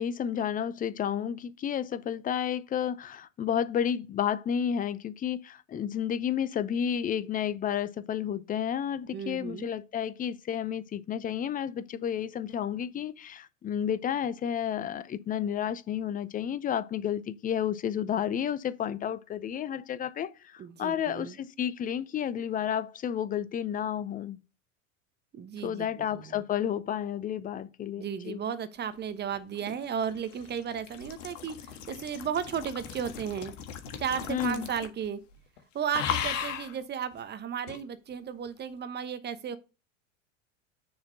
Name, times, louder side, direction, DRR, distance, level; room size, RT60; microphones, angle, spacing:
voice 1, 0.0-24.4 25.6-28.4 34.3-34.7, left 9 dB, 20° left, 0.6 m, -31 dB
voice 2, 9.1-9.7 20.6-21.3 25.3-26.4 28.0-33.5 34.0-35.2 35.7-39.6, right 8 dB, 25° right, 1.1 m, -34 dB
sound 1, 29.3-35.1 35.3-35.6 35.9-36.7 37.7-37.8, left 8 dB, 70° left, 1.6 m, -37 dB
6.8 x 4.3 x 6.7 m
hypercardioid pair, 90°, 39 cm